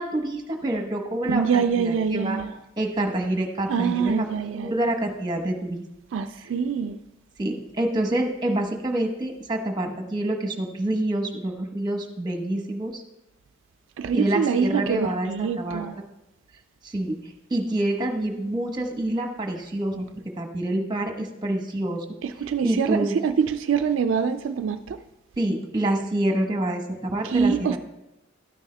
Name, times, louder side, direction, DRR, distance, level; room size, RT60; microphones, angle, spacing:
voice 1, 0.0-2.4 2.8-4.3 4.5-5.8 7.4-13.0 14.1-15.8 16.8-20.0 20.4-22.0 22.6-23.2 25.4-27.8, right 1 dB, 20° right, 1.0 m, -27 dB
voice 2, 1.3-2.6 3.7-4.7 6.1-7.0 14.0-16.0 22.2-25.0 27.2-27.8, right 6 dB, 75° right, 0.3 m, -25 dB
12.0 x 9.7 x 2.2 m
head